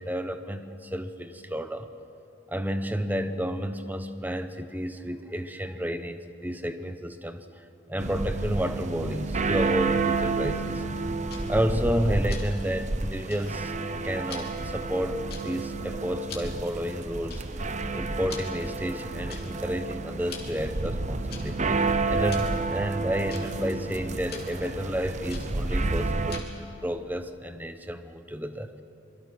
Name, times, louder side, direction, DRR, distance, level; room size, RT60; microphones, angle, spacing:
voice 1, 0.0-1.9 2.5-10.8 11.5-13.7 14.0-17.7 17.9-21.6 22.1-28.8, equal, 10° right, 9 dB, 0.9 m, -31 dB
sound 1, 8.0-26.4, right 3 dB, 35° right, 0.8 m, -30 dB
Tick-tock, 11.3-26.7, left 5 dB, 50° left, 3.3 m, -48 dB
26.5 x 23.0 x 6.1 m, 2.8 s
head